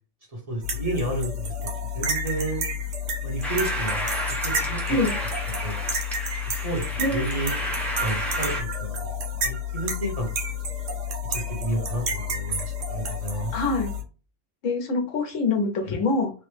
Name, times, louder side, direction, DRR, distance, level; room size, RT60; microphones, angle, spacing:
voice 1, 0.3-2.7 3.2-5.0 5.5-5.8 6.5-7.5 8.0-10.4 11.3-13.5, right 2 dB, 35° right, -1 dB, 0.8 m, -31 dB
sound 1, 0.6-14.0, left 2 dB, 80° right, 1.1 m, -30 dB
sound 2, 3.4-8.6, equal, ahead, 0.3 m, -32 dB
voice 2, 13.5-13.9 14.6-16.3, left 3 dB, 90° left, 3 dB, 1.2 m, -25 dB
3.2 x 2.0 x 3.1 m, 0.35 s
omnidirectional pair, 1.3 m